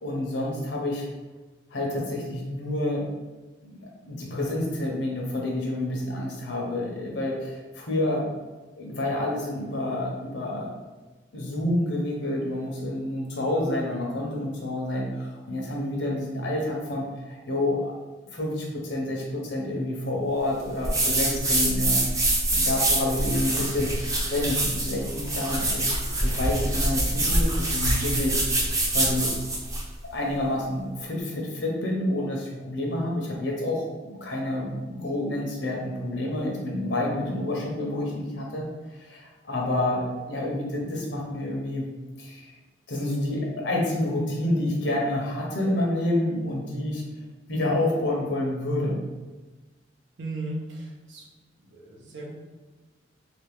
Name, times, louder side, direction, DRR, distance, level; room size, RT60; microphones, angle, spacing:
voice 1, 0.0-1.1 1.7-3.1 3.6-8.3 8.8-10.7 11.3-17.9 18.3-22.0 22.5-28.4 28.9-29.3 30.1-38.6 39.0-41.9 42.2-42.5 42.9-47.0 47.5-49.0, left 1 dB, 75° left, -2 dB, 1.0 m, -28 dB
sound 1, 20.8-29.9, right 1 dB, 20° right, 0.7 m, -25 dB
voice 2, 50.2-51.3 51.6-52.3, right 2 dB, 75° right, -2 dB, 0.9 m, -36 dB
3.3 x 2.9 x 3.6 m, 1.2 s
head